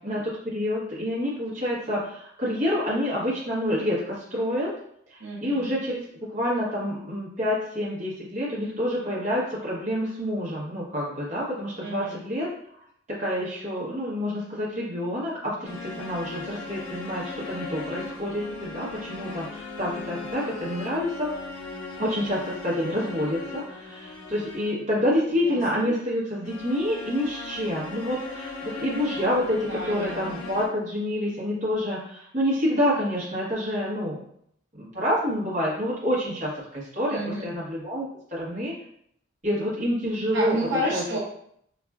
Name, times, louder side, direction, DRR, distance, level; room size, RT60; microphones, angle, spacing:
voice 1, 0.0-4.7 5.1-12.5 13.1-21.3 22.0-34.2 34.8-38.7 39.4-40.5 40.9-41.0, equal, 35° right, -7 dB, 0.9 m, -28 dB
voice 2, 5.2-5.7 11.8-12.2 25.4-25.9 29.7-30.6 37.1-37.5 40.3-41.2, equal, 60° right, -5 dB, 0.8 m, -31 dB
sound 1, 15.6-24.9 26.4-30.7, left 3 dB, 85° left, 0.6 m, -38 dB
4.1 x 2.4 x 2.3 m, 0.69 s
head